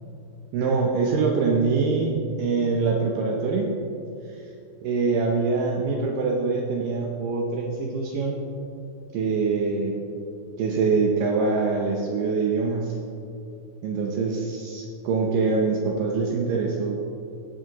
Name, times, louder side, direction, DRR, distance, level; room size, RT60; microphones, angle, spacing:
voice 1, 0.5-3.7 4.8-8.4 9.1-10.0 10.6-13.0 13.8-17.0, right 4 dB, 85° right, -1 dB, 1.9 m, -24 dB
17.0 x 7.7 x 3.0 m, 2.6 s
omnidirectional pair, 4.8 m